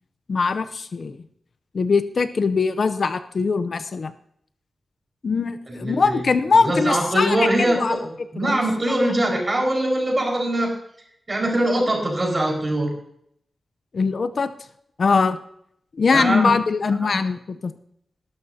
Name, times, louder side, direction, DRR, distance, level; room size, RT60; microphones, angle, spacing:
voice 1, 0.3-1.2 1.7-4.1 5.2-7.9 8.4-8.6 13.9-14.5 15.0-15.4 16.0-17.7, left 4 dB, 55° left, 12 dB, 0.6 m, -21 dB
voice 2, 5.7-6.2 6.6-8.0 8.3-10.7 11.3-12.9 16.1-16.5 17.0-17.2, right 1 dB, 30° right, 1 dB, 4.8 m, -22 dB
19.5 x 12.0 x 2.8 m, 0.70 s
wide cardioid pair, 105°, 0 cm